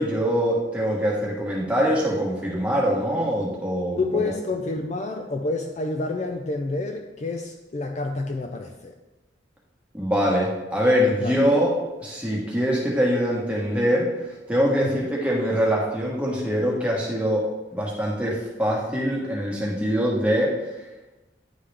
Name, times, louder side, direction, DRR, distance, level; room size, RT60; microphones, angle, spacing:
voice 1, 0.0-4.2 9.9-11.7 12.0-17.4 17.7-20.5, equal, 5° right, -4 dB, 1.3 m, -23 dB
voice 2, 4.0-9.0 11.2-11.4 14.8-15.1, left 3 dB, 40° left, 4 dB, 0.4 m, -28 dB
9.5 x 3.8 x 3.3 m, 1.1 s
head